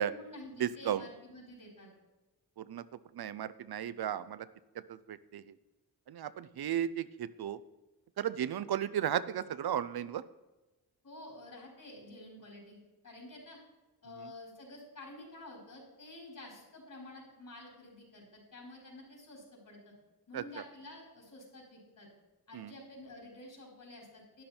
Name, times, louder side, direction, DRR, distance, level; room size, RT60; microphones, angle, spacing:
voice 1, 0.1-1.9 11.0-13.6 14.0-19.9 20.3-22.1 22.5-24.4, left 1 dB, 55° left, -1 dB, 4.7 m, -50 dB
voice 2, 0.6-1.0 2.6-2.9 3.1-4.5 4.9-5.5 6.1-7.6 8.2-10.2 20.3-20.4 22.5-22.7, right 10 dB, 70° right, 15 dB, 0.6 m, -34 dB
12.0 x 10.5 x 4.3 m, 1.1 s
wide cardioid pair, 105°, 38 cm